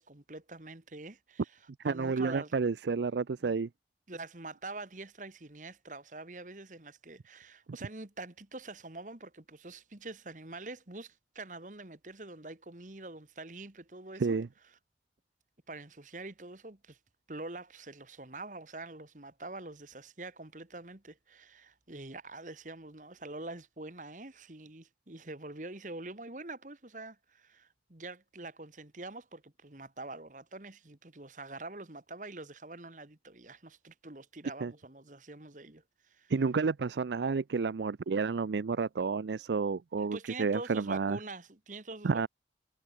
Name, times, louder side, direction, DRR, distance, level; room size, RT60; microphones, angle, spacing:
voice 1, 0.0-1.6 1.8-2.6 3.4-3.6 4.1-14.4 15.7-17.0 17.3-36.3 40.0-42.3, right 2 dB, 45° right, 1.6 m, -45 dB
voice 2, 1.8-3.7 7.7-7.8 14.2-14.5 34.6-34.7 36.3-41.2 42.0-42.3, right 4 dB, 80° right, 0.5 m, -30 dB
head